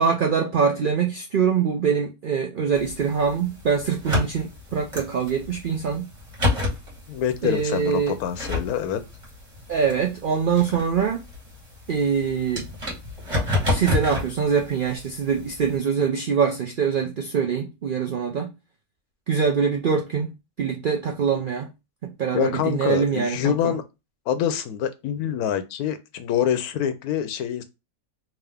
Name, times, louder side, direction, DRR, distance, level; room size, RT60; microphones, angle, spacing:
voice 1, 0.0-6.1 7.4-8.2 9.7-11.2 11.9-12.7 13.7-18.5 19.3-20.3 20.6-21.7 22.0-23.7, right 6 dB, 85° right, 0.4 m, -24 dB
sound 1, 2.7-15.8, left 2 dB, 20° right, 1.4 m, -31 dB
voice 2, 7.1-9.0 22.3-23.8 24.3-27.6, left 9 dB, 80° left, 1.1 m, -25 dB
3.6 x 2.8 x 3.4 m
omnidirectional pair, 1.6 m